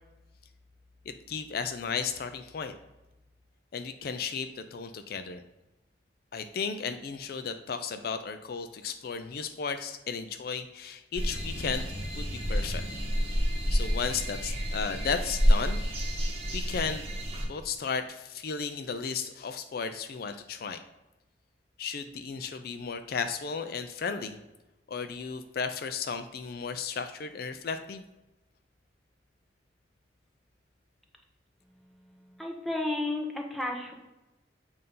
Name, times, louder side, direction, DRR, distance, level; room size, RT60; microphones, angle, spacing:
voice 1, 1.1-2.7 3.7-5.4 6.3-11.8 12.2-12.8 13.7-15.8 16.5-17.0 17.5-20.8 21.8-24.4 24.9-28.0, left 5 dB, 55° left, 8 dB, 0.4 m, -34 dB
sound 1, 11.2-17.5, equal, 30° right, 1.3 m, -29 dB
voice 2, 32.1-33.9, left 2 dB, ahead, 1 dB, 0.7 m, -33 dB
7.6 x 2.7 x 5.3 m, 1.0 s
head